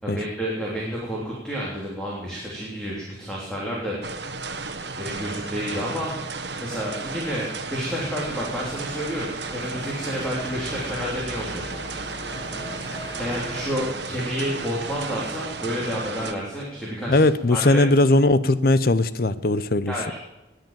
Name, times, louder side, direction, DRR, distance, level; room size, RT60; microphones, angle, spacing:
voice 1, 0.0-4.1 5.0-6.1 6.6-11.6 13.2-17.8 19.9-20.2, equal, 5° left, -5 dB, 3.4 m, -30 dB
sound 1, 4.0-16.3, right 3 dB, 70° right, 1.3 m, -34 dB
sound 2, 8.2-13.6, left 1 dB, 25° left, 2.6 m, -40 dB
voice 2, 17.1-19.9, left 2 dB, 55° left, 15 dB, 0.7 m, -19 dB
20.0 x 8.0 x 7.5 m, 0.99 s
head